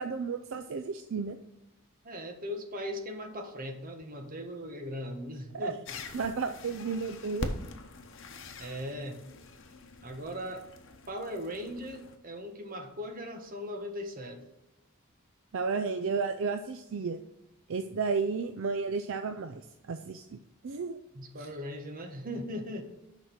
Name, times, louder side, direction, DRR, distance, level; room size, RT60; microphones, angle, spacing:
voice 1, 0.0-1.4 5.5-5.7 6.1-7.5 15.5-17.2 17.7-19.6 19.9-20.4 20.6-21.0 21.4-21.5, right 4 dB, 65° right, 8 dB, 0.4 m, -32 dB
voice 2, 2.0-5.8 8.6-9.2 10.0-10.6 11.1-14.4 21.1-22.8, equal, 40° right, 5 dB, 1.2 m, -39 dB
sound 1, 5.8-12.2, left 2 dB, 65° left, 0.9 m, -43 dB
6.4 x 5.2 x 5.8 m, 0.93 s
head